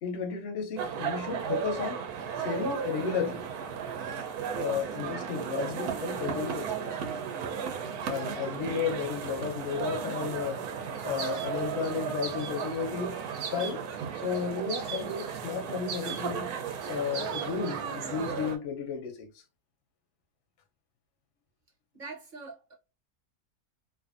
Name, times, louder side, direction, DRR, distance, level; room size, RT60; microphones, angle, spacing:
voice 1, 0.0-2.0 2.4-3.4 4.5-7.1 8.1-10.7 11.0-13.8 14.1-16.6 16.9-19.3, left 6 dB, 55° left, 0.8 m, -33 dB
sound 1, 0.8-18.6, right 7 dB, 85° right, 1.1 m, -35 dB
sound 2, 11.0-11.9 12.2-12.8 13.3-14.0 14.3-14.4 14.7-15.3 15.9-16.2 16.8-18.2, right 6 dB, 65° right, 0.9 m, -40 dB
voice 2, 21.9-22.7, right 3 dB, 40° right, 0.7 m, -43 dB
2.5 x 2.5 x 2.4 m
omnidirectional pair, 1.6 m